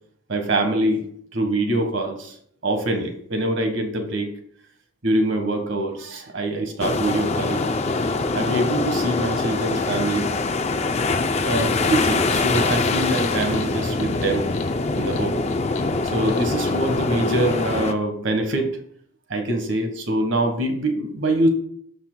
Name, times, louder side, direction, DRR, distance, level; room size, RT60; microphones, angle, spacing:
voice 1, 0.3-1.0 1.3-2.4 2.6-4.3 5.0-7.7 7.9-8.1 8.3-10.3 11.4-14.5 14.9-15.4 16.0-18.8 19.3-21.5, right 1 dB, 75° right, 5 dB, 1.4 m, -24 dB
sound 1, 6.8-17.9, left 3 dB, 35° left, 0.5 m, -23 dB
sound 2, 11.6-16.8, left 3 dB, 85° left, 1.0 m, -35 dB
14.0 x 5.6 x 2.2 m, 0.66 s
head